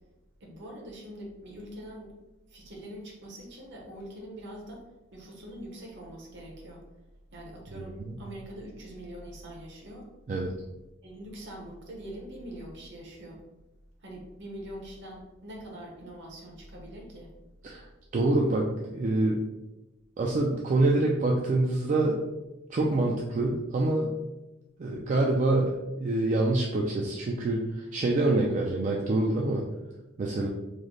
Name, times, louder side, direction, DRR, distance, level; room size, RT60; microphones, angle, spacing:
voice 1, 0.4-2.1 2.5-4.8 5.1-6.8 7.3-10.1 11.0-13.4 14.0-17.3, right 1 dB, 55° right, -1 dB, 0.8 m, -43 dB
voice 2, 7.7-8.1 10.3-10.5 17.6-17.9 18.1-19.4 20.2-22.2 22.7-24.1 24.8-29.6 30.2-30.5, right 2 dB, 35° right, -1 dB, 0.3 m, -26 dB
3.2 x 2.1 x 3.7 m, 1.0 s
head